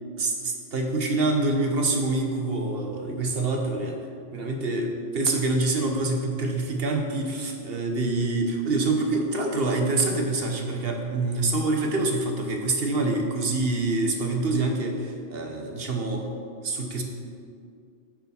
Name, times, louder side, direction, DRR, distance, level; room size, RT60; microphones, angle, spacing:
voice 1, 0.2-4.0 4.3-16.3 16.6-17.0, right 2 dB, 55° right, 2 dB, 1.1 m, -26 dB
9.3 x 5.0 x 5.6 m, 2.3 s
omnidirectional pair, 1.2 m